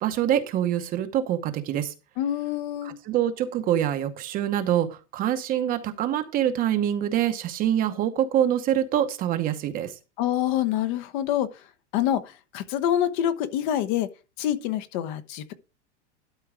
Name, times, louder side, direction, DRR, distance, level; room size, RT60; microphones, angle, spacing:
voice 1, 0.0-1.9 2.8-9.9, right 11 dB, 25° right, 0.9 m, -25 dB
voice 2, 2.2-2.9 10.2-11.5 11.9-14.1 14.4-15.5, left 11 dB, 40° left, 1.0 m, -26 dB
12.5 x 4.6 x 4.9 m
supercardioid pair, 155°, 36 cm